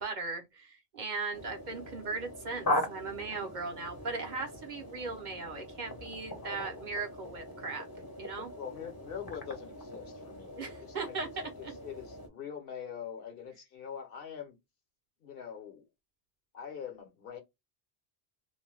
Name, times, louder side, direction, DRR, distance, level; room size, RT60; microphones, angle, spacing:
voice 1, 0.0-7.8 8.2-8.5 10.6-11.3 11.6-11.7, right 4 dB, 55° right, 0.7 m, -38 dB
sound 1, 1.3-12.3, left 1 dB, 25° left, 0.6 m, -40 dB
voice 2, 6.4-6.8 8.5-14.6 15.2-15.9 16.5-17.4, left 8 dB, 65° left, 1.0 m, -44 dB
2.5 x 2.2 x 3.2 m
omnidirectional pair, 1.0 m